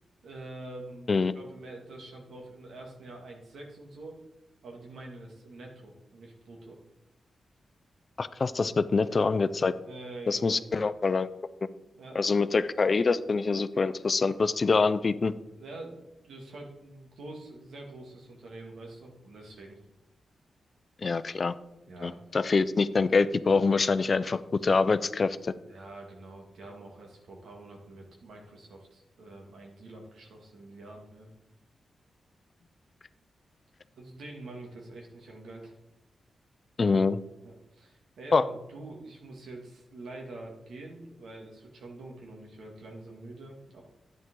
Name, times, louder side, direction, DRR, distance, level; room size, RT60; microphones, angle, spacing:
voice 1, 0.2-4.2 4.6-6.8 9.9-10.6 12.0-12.2 15.6-19.8 21.9-22.2 25.5-31.3 33.9-35.8 37.4-43.8, right 2 dB, 80° right, 0 dB, 2.3 m, -46 dB
voice 2, 8.2-9.7 10.3-11.3 12.1-15.3 21.0-21.6 22.0-25.5 36.8-37.2 38.3-38.4, left 4 dB, 50° left, 13 dB, 0.5 m, -25 dB
11.5 x 9.3 x 3.8 m, 0.94 s
cardioid pair, 60°, 0 cm